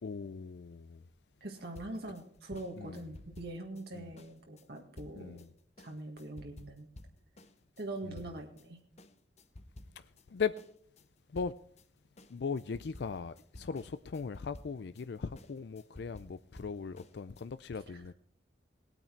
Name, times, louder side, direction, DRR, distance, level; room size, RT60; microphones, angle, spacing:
voice 1, 0.0-1.0 2.8-3.0 3.9-4.1 5.2-5.5 8.0-8.2 10.0-10.5 11.3-11.5 12.3-18.1, left 5 dB, 65° left, 0.4 m, -39 dB
voice 2, 1.4-5.4 5.8-6.9 7.8-8.8 17.9-18.1, right 2 dB, 60° right, 1.8 m, -43 dB
sound 1, 1.7-8.7 9.0-10.3 10.6-17.5, left 1 dB, 40° left, 0.9 m, -54 dB
18.5 x 9.1 x 4.5 m
head